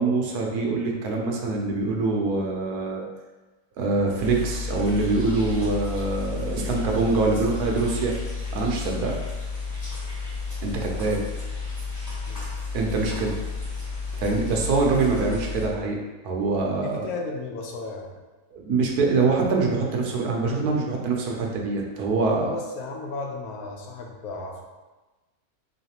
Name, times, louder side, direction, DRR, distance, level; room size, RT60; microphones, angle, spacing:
voice 1, 0.0-3.0 3.8-8.1 8.5-9.2 10.6-11.2 12.7-13.4 14.2-16.0 16.2-17.1 18.5-22.5, right 3 dB, 80° right, 0 dB, 1.1 m, -24 dB
sound 1, 4.2-15.7, left 4 dB, 15° left, 1.0 m, -32 dB
voice 2, 16.8-18.2 22.4-24.6, left 3 dB, 75° left, 1 dB, 1.1 m, -35 dB
3.9 x 3.2 x 2.8 m, 1.2 s
omnidirectional pair, 1.6 m